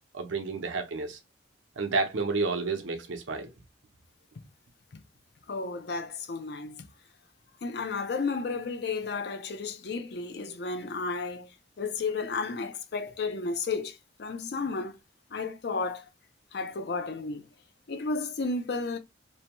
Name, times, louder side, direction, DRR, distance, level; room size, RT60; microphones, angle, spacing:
voice 1, 0.1-1.2 1.8-3.5, right 3 dB, 85° right, 0.7 m, -30 dB
voice 2, 5.5-6.9 7.6-15.0 15.3-16.1 16.5-17.5 17.9-19.0, left 4 dB, 55° left, 0.5 m, -33 dB
2.8 x 2.2 x 2.8 m
head